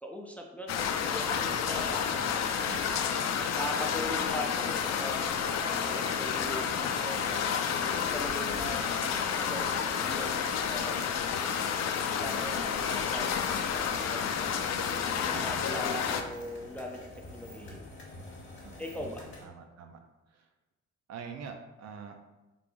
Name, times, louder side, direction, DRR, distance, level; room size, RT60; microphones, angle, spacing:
voice 1, 0.0-2.1 3.5-11.2 12.2-14.7 15.2-17.8 18.8-19.3, equal, 5° left, 1 dB, 0.4 m, -41 dB
sound 1, 0.7-16.2, left 7 dB, 60° left, 0.4 m, -30 dB
voice 2, 1.2-2.3 2.6-3.0 15.3-15.7 18.6-18.8 19.4-20.0 20.3-20.5 21.1-22.2, right 6 dB, 60° right, 5 dB, 0.5 m, -45 dB
sound 2, 12.6-19.4, left 1 dB, 40° left, 1.3 m, -47 dB
3.4 x 3.4 x 2.5 m, 1.1 s
cardioid pair, 90°, 30 cm